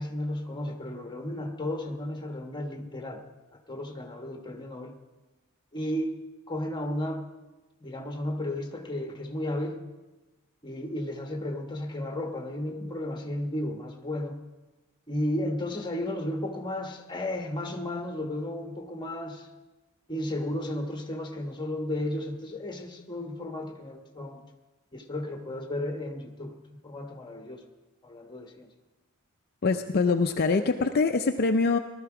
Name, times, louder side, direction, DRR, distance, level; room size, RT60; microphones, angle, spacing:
voice 1, 0.0-3.2 3.5-5.0 5.7-6.1 6.5-7.2 7.8-9.8 10.6-14.4 15.1-19.5 20.1-24.4 24.9-26.5 26.8-27.6 28.0-28.7, left 1 dB, 20° left, 4 dB, 1.2 m, -33 dB
voice 2, 29.6-31.8, left 4 dB, 50° left, 5 dB, 0.6 m, -24 dB
18.0 x 12.5 x 4.9 m, 1.1 s
head